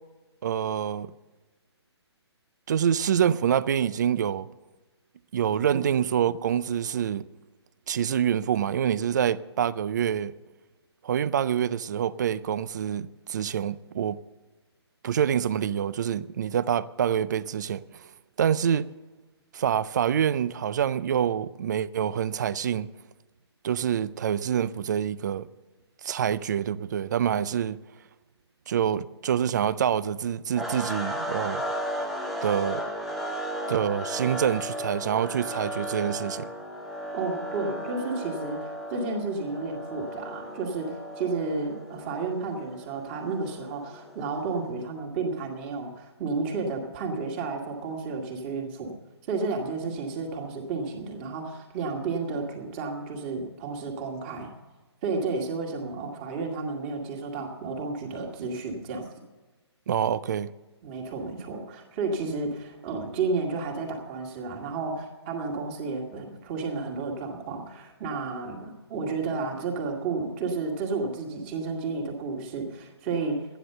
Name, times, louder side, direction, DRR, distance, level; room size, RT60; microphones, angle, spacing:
voice 1, 0.4-1.1 2.7-4.5 5.3-7.2 7.9-10.3 11.0-14.2 15.0-18.1 18.4-18.9 19.5-22.9 23.6-25.5 26.0-27.8 28.7-31.6 32.4-32.8 33.7-36.5 59.9-60.5, right 9 dB, 40° right, 0.4 m, -26 dB
sound 1, 30.6-44.7, equal, ahead, 0.8 m, -35 dB
voice 2, 37.1-48.9 49.3-54.5 55.0-59.1 60.8-73.4, right 4 dB, 25° right, 2.1 m, -32 dB
13.0 x 10.0 x 6.7 m
hypercardioid pair, 160°, 14 cm